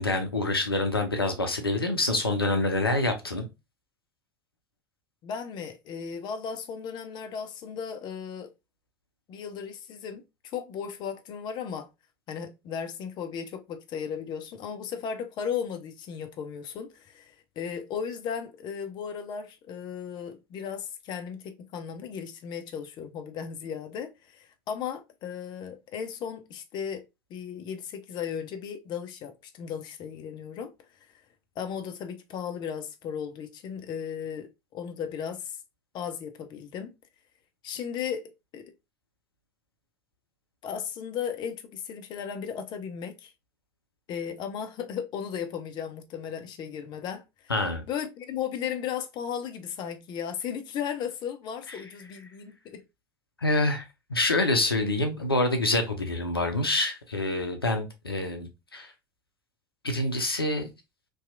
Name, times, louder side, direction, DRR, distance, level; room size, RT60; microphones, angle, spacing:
voice 1, 0.0-3.5 47.5-47.8 51.7-51.8 53.4-58.9 59.8-60.7, left 2 dB, 90° left, 0.5 m, -26 dB
voice 2, 5.2-8.5 9.3-10.2 10.5-11.9 12.3-27.0 27.3-30.7 31.6-35.6 35.9-36.9 37.6-38.2 38.5-38.6 40.6-43.3 44.1-47.2 47.9-52.8, left 7 dB, 40° left, 0.5 m, -35 dB
2.7 x 2.3 x 2.4 m
figure-of-eight pair, 75°, 12 cm